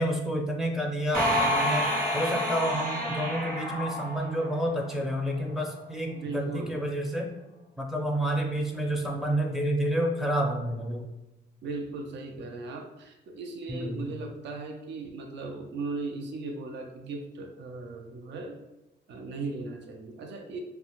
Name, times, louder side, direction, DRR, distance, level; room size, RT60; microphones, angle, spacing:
voice 1, 0.0-7.3 7.8-11.1 13.7-14.1, equal, ahead, 0 dB, 0.5 m, -29 dB
sound 1, 1.1-4.8, equal, 50° right, 0.9 m, -28 dB
voice 2, 6.1-6.7 11.6-18.6 19.1-20.6, right 3 dB, 70° right, 3 dB, 0.4 m, -37 dB
2.4 x 2.2 x 2.9 m, 1.0 s
cardioid pair, 85°, 19 cm